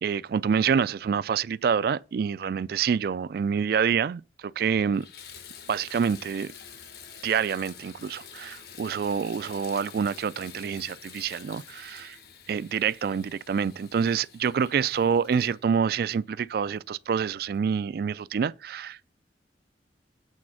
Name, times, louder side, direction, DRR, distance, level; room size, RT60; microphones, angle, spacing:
voice 1, 0.0-5.1 5.7-6.5 7.2-12.2 12.5-19.1, right 6 dB, 55° right, 0.3 m, -27 dB
Water tap faucet / Bathtub (filling or washing), 3.9-4.0 4.5-16.9 17.5-17.6 18.2-18.3, left 7 dB, 60° left, 1.0 m, -48 dB
8.5 x 4.2 x 6.2 m
head